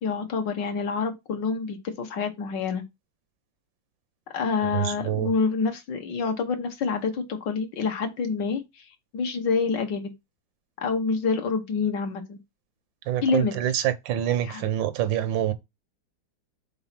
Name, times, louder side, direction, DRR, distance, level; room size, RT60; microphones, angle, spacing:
voice 1, 0.0-2.8 4.3-8.8 9.1-10.1 10.8-12.4 13.2-13.5 14.4-14.6, left 5 dB, 70° left, 1.7 m, -27 dB
voice 2, 4.6-5.3 13.1-15.5, right 11 dB, 90° right, 1.5 m, -26 dB
4.7 x 4.0 x 5.7 m
omnidirectional pair, 2.0 m